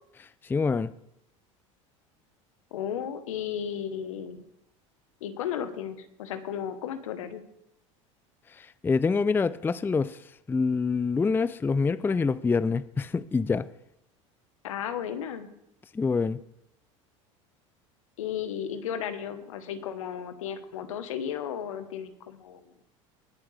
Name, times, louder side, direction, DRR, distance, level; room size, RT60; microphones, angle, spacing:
voice 1, 0.4-0.9 8.5-10.2 10.5-13.7 15.9-16.4, left 4 dB, 15° left, 0.4 m, -26 dB
voice 2, 2.7-4.4 5.2-7.4 14.6-15.5 18.2-22.7, left 9 dB, 80° left, 1.2 m, -34 dB
19.0 x 7.9 x 3.4 m
hypercardioid pair, 85°, 17 cm